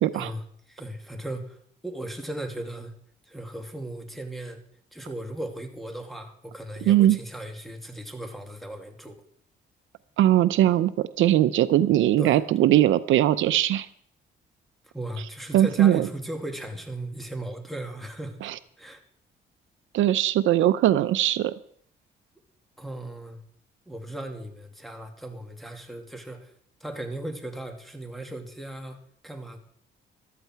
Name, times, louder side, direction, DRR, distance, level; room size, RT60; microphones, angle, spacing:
voice 1, 0.1-2.9 3.2-4.6 4.9-9.2 12.2-12.4 14.8-18.5 18.8-19.0 22.8-23.4 23.9-26.5 26.8-29.6, right 1 dB, ahead, 4 dB, 2.5 m, -37 dB
voice 2, 6.9-7.2 10.2-13.9 15.5-16.1 18.4-18.5 19.9-21.5, right 13 dB, 80° right, 14 dB, 0.6 m, -20 dB
14.0 x 13.0 x 4.6 m, 0.63 s
cardioid pair, 90°, 20 cm